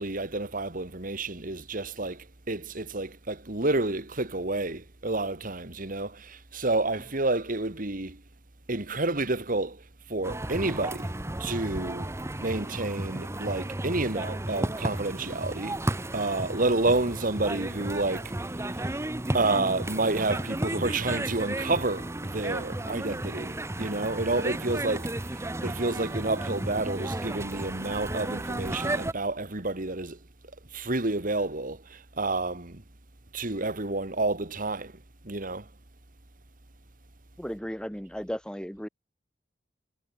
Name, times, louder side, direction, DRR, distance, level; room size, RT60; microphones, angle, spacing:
voice 1, 0.0-8.2 8.7-11.1 11.4-12.1 12.4-18.3 18.6-18.9 19.3-30.2 30.7-32.8 33.3-34.9 35.2-35.7, right 2 dB, 45° right, 2.1 m, -30 dB
sound 1, 10.2-29.1, right 1 dB, 15° right, 1.0 m, -33 dB
voice 2, 37.4-38.9, equal, 5° left, 3.1 m, -35 dB
head